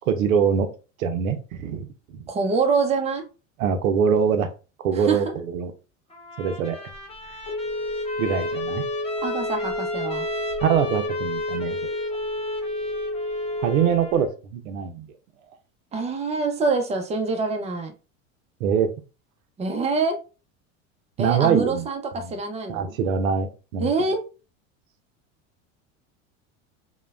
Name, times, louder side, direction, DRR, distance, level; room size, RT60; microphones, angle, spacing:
voice 1, 0.1-0.7 1.0-2.2 3.6-4.5 4.8-5.7 6.4-6.8 8.2-8.8 10.6-11.9 13.6-15.1 18.6-18.9 21.2-21.8 22.2-22.3 22.7-23.9, right 7 dB, 90° right, 8 dB, 0.6 m, -23 dB
voice 2, 2.3-3.2 4.9-5.3 9.2-10.3 15.9-17.9 19.6-20.2 21.2-22.9 23.8-24.2, right 4 dB, 15° right, 5 dB, 0.5 m, -25 dB
Trumpet, 6.1-14.3, left 2 dB, 15° left, 0.8 m, -37 dB
Telephone, 6.9-14.3, left 1 dB, 50° left, 0.8 m, -30 dB
3.0 x 2.2 x 2.3 m, 0.33 s
hypercardioid pair, 95°, 39 cm